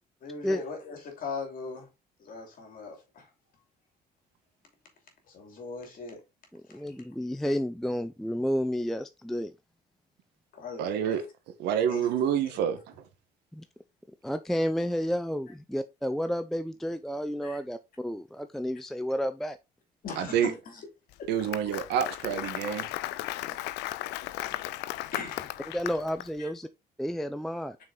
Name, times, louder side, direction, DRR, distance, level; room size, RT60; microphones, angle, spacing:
voice 1, 0.2-1.9 2.2-3.3 5.3-6.2 6.7-7.0 10.5-11.2 11.9-12.1 17.4-17.6 20.0-20.8 21.2-21.3 23.4-23.6 24.4-24.6 25.1-25.5 26.4-26.5, left 4 dB, 55° left, 2.8 m, -40 dB
voice 2, 6.5-9.5 13.5-13.6 14.2-19.6 25.7-26.7 27.0-27.8, equal, ahead, 0.4 m, -31 dB
voice 3, 10.8-13.1 20.2-20.5 21.3-22.9, right 9 dB, 85° right, 1.2 m, -28 dB
Applause, 21.1-26.3, left 16 dB, 90° left, 0.4 m, -36 dB
6.1 x 4.4 x 3.8 m
cardioid pair, 110°, 17 cm